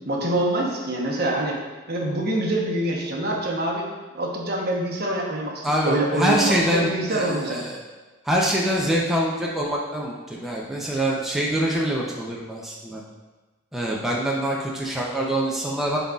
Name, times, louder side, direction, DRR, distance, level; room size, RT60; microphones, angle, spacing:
voice 1, 0.0-1.6 1.9-3.9 4.1-7.6, right 1 dB, 50° right, -1 dB, 1.0 m, -25 dB
voice 2, 5.6-7.8 8.2-13.0 13.7-16.0, equal, ahead, -4 dB, 0.6 m, -24 dB
10.5 x 3.9 x 2.4 m, 1.2 s
head